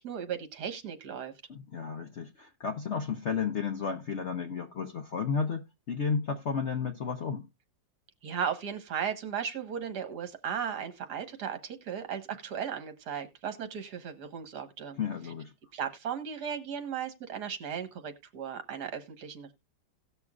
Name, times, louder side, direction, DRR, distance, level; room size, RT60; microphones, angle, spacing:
voice 1, 0.0-1.3 8.2-15.0 15.7-19.5, right 7 dB, 60° right, 1.7 m, -36 dB
voice 2, 1.5-7.5 15.0-15.5, left 6 dB, 55° left, 0.8 m, -33 dB
17.5 x 6.2 x 2.4 m
omnidirectional pair, 2.0 m